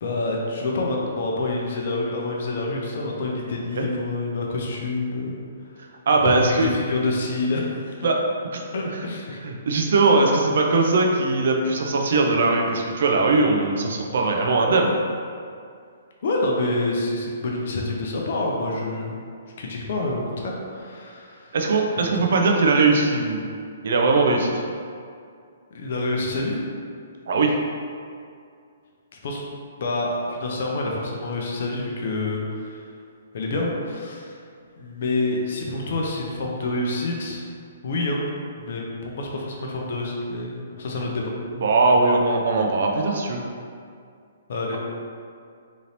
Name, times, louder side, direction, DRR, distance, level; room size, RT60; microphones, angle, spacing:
voice 1, 0.0-5.4 6.2-8.1 8.7-9.4 16.2-19.2 19.6-21.6 22.1-22.3 25.7-26.6 29.2-29.4 29.8-32.8 33.3-34.4 34.8-37.4 37.8-38.2 38.6-41.3 44.5-44.8, left 2 dB, 50° left, -1 dB, 0.5 m, -27 dB
voice 2, 6.1-6.7 8.0-8.2 8.5-8.6 9.4-14.9 21.5-23.4 23.8-24.6 27.3-27.5 41.6-43.4, right 3 dB, 55° right, 1 dB, 0.4 m, -20 dB
3.7 x 3.0 x 2.7 m, 2.3 s
figure-of-eight pair, 120°, 0 cm